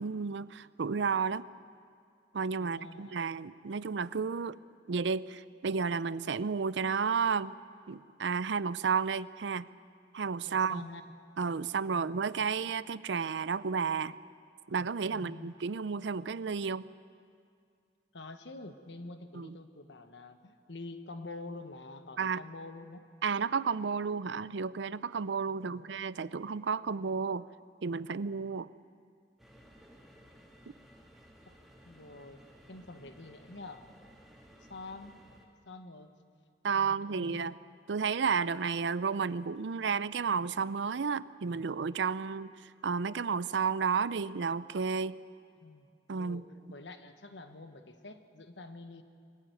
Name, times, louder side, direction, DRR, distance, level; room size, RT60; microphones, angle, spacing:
voice 1, 0.0-1.5 2.3-4.6 4.9-7.6 7.9-9.7 10.1-10.8 11.4-14.2 14.7-16.9 19.3-19.5 22.2-22.4 23.2-27.5 27.8-28.7 36.6-37.5 37.9-42.5 42.8-45.2 46.1-46.4, right 5 dB, 75° right, 17 dB, 0.5 m, -32 dB
voice 2, 2.6-3.2 10.4-11.1 11.9-12.2 15.1-15.5 18.1-23.0 25.5-25.9 31.5-31.6 31.8-32.4 32.7-33.9 34.7-35.2 35.7-36.1 36.7-37.5 45.6-45.9 46.2-49.0, left 2 dB, 75° left, 9 dB, 1.4 m, -47 dB
sound 1, 29.4-35.5, equal, ahead, 2.0 m, -57 dB
22.0 x 15.5 x 9.4 m, 2.3 s
head